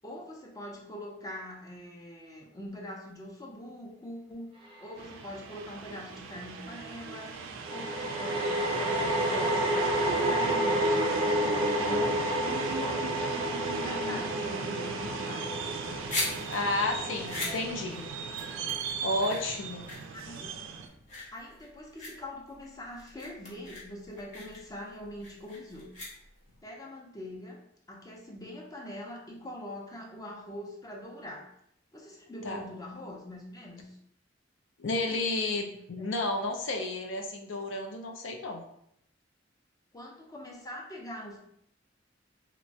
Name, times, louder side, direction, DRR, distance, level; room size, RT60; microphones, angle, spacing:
voice 1, 0.0-4.5 4.8-7.4 7.7-11.0 11.3-15.6 17.1-17.2 19.2-19.4 20.1-20.5 21.3-25.9 26.6-27.6 27.9-31.5 31.9-34.0 36.0-36.1 39.9-41.4, left 1 dB, 20° left, 0 dB, 0.5 m, -43 dB
sound 1, 4.7-4.8 7.6-19.0, equal, 30° right, 0.5 m, -31 dB
sound 2, 5.0-20.9, right 5 dB, 80° right, 0.3 m, -36 dB
voice 2, 11.6-12.1 16.5-18.0 19.0-19.8 32.4-32.6 34.8-38.6, left 2 dB, 70° left, 3 dB, 0.5 m, -32 dB
sound 3, 15.7-26.6, left 2 dB, 40° left, 0.9 m, -40 dB
2.9 x 2.2 x 2.6 m, 0.73 s
head